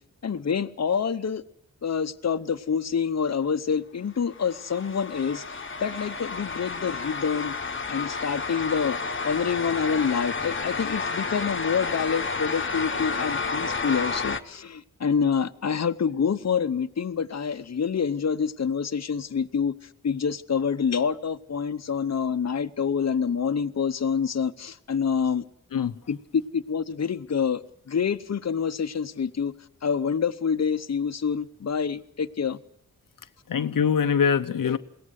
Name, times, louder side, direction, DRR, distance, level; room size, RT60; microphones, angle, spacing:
voice 1, 0.2-1.4 1.8-7.5 7.9-9.0 9.2-19.7 20.0-25.4 26.1-27.6 27.9-29.5 29.8-32.6, left 6 dB, 55° left, 0.9 m, -27 dB
sound 1, 4.3-14.4, left 4 dB, 40° left, 1.2 m, -31 dB
voice 2, 33.5-34.8, left 7 dB, 90° left, 0.8 m, -23 dB
22.0 x 17.5 x 8.1 m
wide cardioid pair, 75°, 32 cm